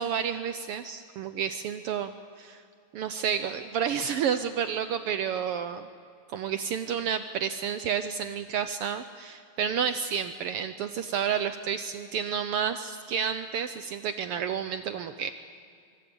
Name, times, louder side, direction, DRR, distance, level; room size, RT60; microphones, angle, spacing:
voice 1, 0.0-2.6 2.9-5.9 6.3-15.3, right 7 dB, 85° right, 10 dB, 1.3 m, -30 dB
24.5 x 24.0 x 7.0 m, 2.3 s
omnidirectional pair, 3.4 m